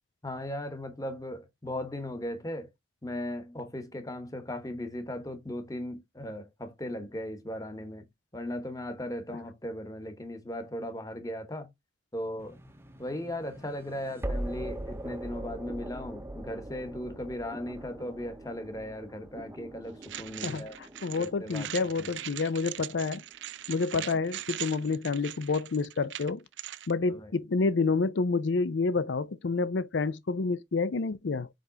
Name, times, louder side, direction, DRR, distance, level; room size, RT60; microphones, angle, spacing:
voice 1, 0.2-2.7 3.0-8.1 8.3-11.7 12.1-12.6 13.0-20.8 21.2-21.7 22.0-22.1 23.9-24.0 27.1-27.3, left 1 dB, 20° left, 1.1 m, -37 dB
sound 1, 12.4-23.4, right 1 dB, 15° right, 0.6 m, -42 dB
sound 2, 20.0-26.9, right 13 dB, 75° right, 0.4 m, -41 dB
voice 2, 20.4-23.2 23.7-26.4 26.9-31.5, left 4 dB, 75° left, 0.5 m, -29 dB
5.1 x 4.8 x 3.8 m
head